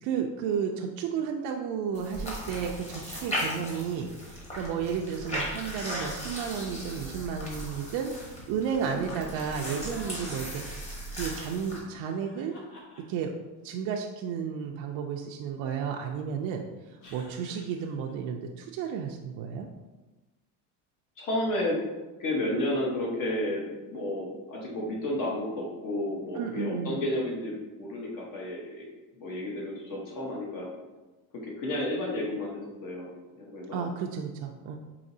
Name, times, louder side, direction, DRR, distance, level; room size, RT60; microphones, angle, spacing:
voice 1, 0.0-12.6 13.1-13.3 13.6-16.6 17.1-19.7 26.3-27.0 33.7-34.8, right 7 dB, 60° right, 1 dB, 0.5 m, -33 dB
sound 1, 1.9-11.8, equal, 15° left, 1.0 m, -37 dB
sound 2, 9.5-10.3 12.0-13.4 17.0-18.1, left 1 dB, 85° left, 1.3 m, -49 dB
voice 2, 21.2-21.8 22.2-28.9 29.1-30.7 31.4-33.9, left 1 dB, 50° left, -2 dB, 1.1 m, -32 dB
4.8 x 2.9 x 2.7 m, 1.1 s
cardioid pair, 140°, 40 cm